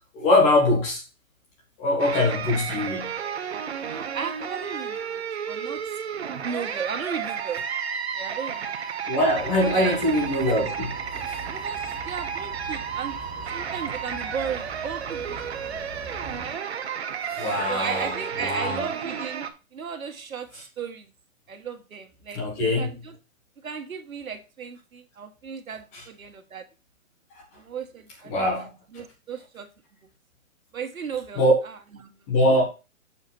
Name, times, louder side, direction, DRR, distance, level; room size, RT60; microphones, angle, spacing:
voice 1, 0.1-1.0 1.8-3.2 9.1-11.4 17.3-18.1 18.4-18.9 20.5-20.6 22.3-22.9 25.9-26.0 28.2-28.7 31.4-31.5 32.3-32.6, left 1 dB, 10° left, 1.3 m, -23 dB
sound 1, 2.0-19.5, right 7 dB, 50° right, 0.9 m, -32 dB
voice 2, 3.9-5.8 6.4-7.7 8.1-8.7 9.6-10.0 11.5-11.8 12.0-13.2 13.5-16.2 16.4-16.6 17.7-19.4 19.7-21.1 21.5-22.4 22.8-23.2 23.6-26.6 27.5-29.7 30.7-31.7 32.0-32.2, right 6 dB, 90° right, 1.7 m, -35 dB
sound 2, 9.2-16.5, right 2 dB, 10° right, 1.8 m, -42 dB
7.1 x 5.7 x 4.2 m
hypercardioid pair, 175°, 40 cm